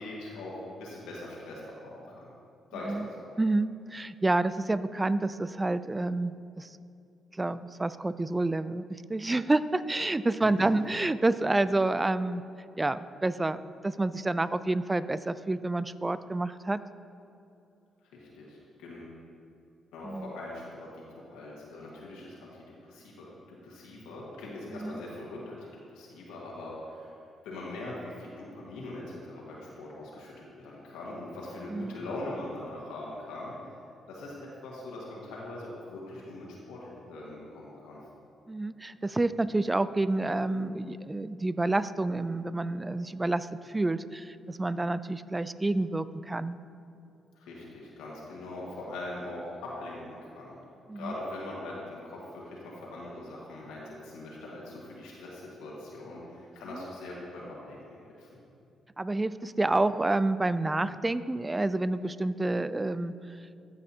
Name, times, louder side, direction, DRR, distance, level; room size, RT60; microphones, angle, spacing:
voice 1, 0.0-2.3 2.7-3.3 10.6-10.7 18.1-19.1 19.9-27.2 27.4-33.5 34.1-38.0 47.3-50.6 50.9-58.3, left 2 dB, 80° left, -4 dB, 1.5 m, -42 dB
voice 2, 3.4-6.8 7.3-12.4 12.8-13.6 13.8-16.8 20.0-20.3 24.7-25.0 31.7-32.0 38.5-46.6 50.9-51.1 56.7-56.8 59.0-63.1, right 2 dB, 20° right, 15 dB, 0.3 m, -29 dB
14.5 x 5.4 x 2.8 m, 2.6 s
hypercardioid pair, 45°, 0 cm